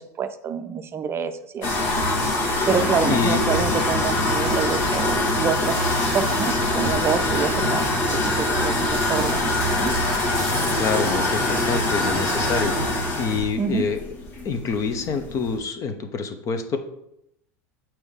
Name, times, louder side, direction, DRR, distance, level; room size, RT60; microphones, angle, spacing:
voice 1, 0.0-1.7 2.7-5.9 6.1-9.9 13.6-13.8, right 6 dB, 30° right, 9 dB, 0.5 m, -27 dB
sound 1, 1.6-15.6, left 1 dB, 65° left, 1.9 m, -23 dB
voice 2, 2.6-3.6 10.8-14.1 14.4-16.8, left 5 dB, 40° left, 8 dB, 0.9 m, -27 dB
sound 2, 3.7-6.5 7.2-7.3 7.6-11.1, right 1 dB, 5° left, 1.5 m, -37 dB
7.8 x 4.4 x 3.6 m, 0.80 s
hypercardioid pair, 90°, 8 cm